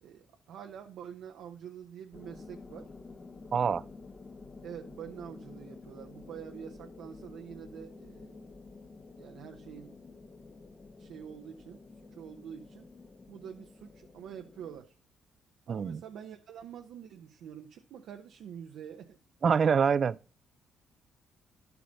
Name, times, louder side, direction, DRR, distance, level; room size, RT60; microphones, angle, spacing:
voice 1, 0.0-2.9 4.6-8.5 9.2-10.0 11.0-11.8 12.1-12.8 13.3-15.0 15.7-19.2, right 8 dB, 80° right, 0.8 m, -46 dB
sound 1, 2.1-14.8, left 3 dB, 35° left, 1.1 m, -50 dB
voice 2, 3.5-3.8 15.7-16.0 19.4-20.2, right 6 dB, 50° right, 0.4 m, -25 dB
11.0 x 7.0 x 4.0 m
cardioid pair, 90°, 0 cm